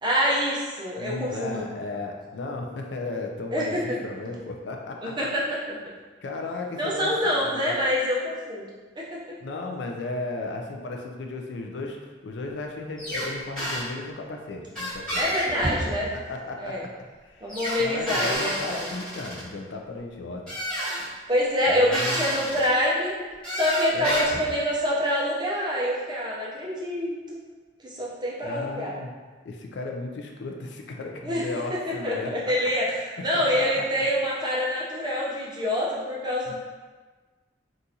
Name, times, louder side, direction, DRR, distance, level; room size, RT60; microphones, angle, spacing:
voice 1, 0.0-1.6 3.5-4.0 5.0-5.6 6.8-8.7 9.0-9.2 15.2-16.1 16.6-16.8 17.4-18.9 21.3-23.1 23.5-27.4 27.8-28.9 31.2-31.4 31.7-36.5, equal, 25° right, -5 dB, 0.7 m, -26 dB
voice 2, 1.0-5.2 6.2-7.7 9.4-12.0 12.2-15.3 16.1-16.9 17.2-20.4 21.7-22.2 23.9-24.4 28.4-29.1 29.4-32.3 33.3-33.6 33.9-34.0 36.5-36.6, left 2 dB, 80° left, 2 dB, 0.4 m, -35 dB
sound 1, 13.0-13.3 13.6-13.8 14.7-16.1 17.5-19.4 20.5-21.1 21.9-22.7 23.4-24.5, equal, 5° left, 1.5 m, -30 dB
3.8 x 2.4 x 2.8 m, 1.4 s
head